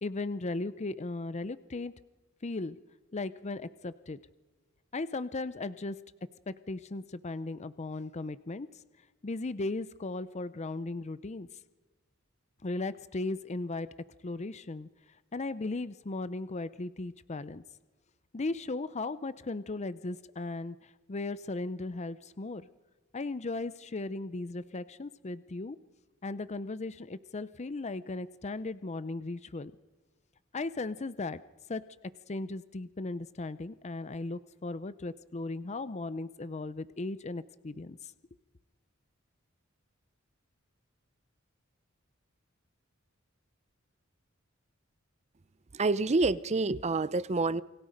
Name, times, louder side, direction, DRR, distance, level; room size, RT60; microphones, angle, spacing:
voice 1, 0.0-1.9 2.4-2.8 3.1-4.2 4.9-6.0 6.5-8.7 9.2-11.5 12.6-13.9 14.2-14.9 15.3-17.6 18.3-22.7 23.1-25.8 26.2-29.7 30.5-31.4 31.7-38.1, left 2 dB, 35° left, 0.6 m, -37 dB
voice 2, 45.7-47.6, right 3 dB, 35° right, 0.6 m, -27 dB
29.0 x 22.0 x 5.2 m
head